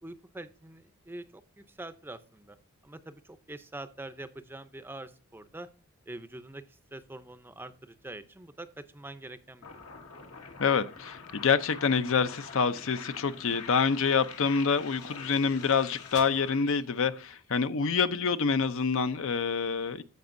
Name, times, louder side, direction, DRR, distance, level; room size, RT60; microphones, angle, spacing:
voice 1, 0.0-2.6 2.8-5.7 6.1-9.9, right 2 dB, 10° right, 0.5 m, -45 dB
sound 1, 9.6-17.4, left 5 dB, 80° left, 1.7 m, -46 dB
voice 2, 10.6-20.0, left 5 dB, 65° left, 0.6 m, -27 dB
15.0 x 5.2 x 2.6 m
head